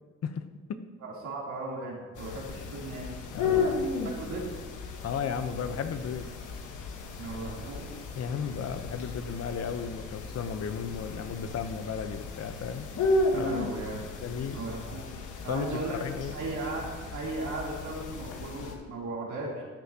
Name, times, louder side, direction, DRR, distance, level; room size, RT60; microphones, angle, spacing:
voice 1, 1.0-3.1 3.4-4.5 7.2-8.0 13.3-14.0 14.5-15.1 15.4-16.0 16.3-19.6, right 2 dB, 75° right, -4 dB, 3.2 m, -37 dB
sound 1, 2.1-18.7, left 3 dB, 80° left, 1.3 m, -34 dB
voice 2, 3.3-3.7 5.0-6.3 8.1-12.9 13.3-13.7 14.2-14.6 15.5-16.3, left 6 dB, 55° left, 9 dB, 0.8 m, -34 dB
13.5 x 9.5 x 2.9 m, 1.5 s
cardioid pair, 90°, 30 cm